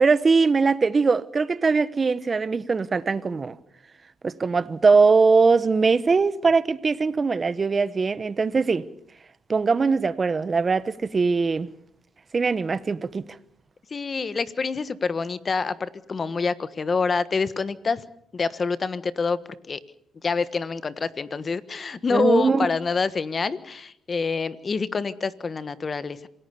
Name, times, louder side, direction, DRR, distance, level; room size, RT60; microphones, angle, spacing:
voice 1, 0.0-3.6 4.2-8.8 9.5-11.7 12.3-13.2 22.1-22.7, right 4 dB, 35° right, 1.1 m, -21 dB
voice 2, 13.9-18.0 18.3-19.4 19.7-19.8 20.2-26.3, left 4 dB, 35° left, 1.3 m, -26 dB
27.0 x 17.5 x 7.0 m
cardioid pair, 90°, 0 cm